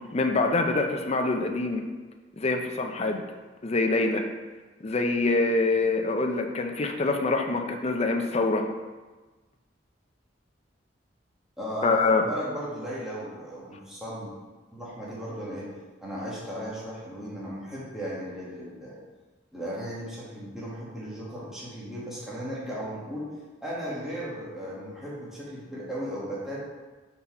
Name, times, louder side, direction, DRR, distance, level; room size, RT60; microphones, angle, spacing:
voice 1, 0.1-1.8 2.4-3.2 3.6-4.2 4.8-8.6 11.8-12.3, left 3 dB, 35° left, 4 dB, 0.5 m, -25 dB
voice 2, 11.6-14.3 14.7-15.7 16.0-19.0 19.5-23.3 23.6-26.6, equal, 5° right, -8 dB, 1.5 m, -36 dB
5.5 x 4.3 x 4.3 m, 1.3 s
head